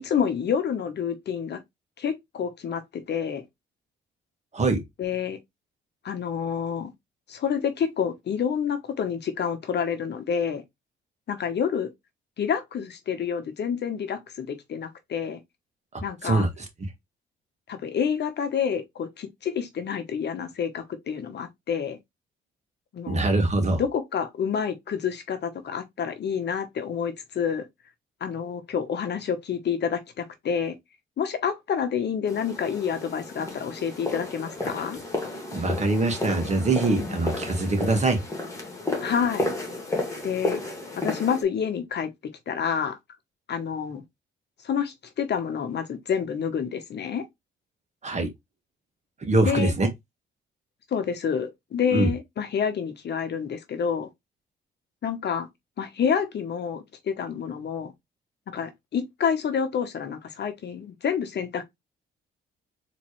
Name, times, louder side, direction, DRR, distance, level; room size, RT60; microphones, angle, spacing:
voice 1, 0.0-1.6 2.0-3.4 5.0-5.4 6.0-6.9 7.3-10.6 11.3-11.9 12.4-15.4 16.0-16.5 17.7-22.0 22.9-23.3 23.8-27.7 28.2-30.8 31.2-35.0 39.0-39.5 40.2-40.6 41.0-42.1 42.5-43.0 43.5-44.0 44.6-47.3 49.4-49.7 50.9-54.1 55.0-55.5 55.8-57.9 58.5-61.6, left 7 dB, 55° left, 1.0 m, -28 dB
voice 2, 16.2-16.6 23.1-23.8 35.5-38.2 48.0-48.3 49.2-49.9 51.9-52.1, right 2 dB, 35° right, 1.7 m, -23 dB
sound 1, 32.3-41.4, left 2 dB, 15° left, 2.0 m, -32 dB
4.2 x 3.2 x 3.2 m
cardioid pair, 80°, 20 cm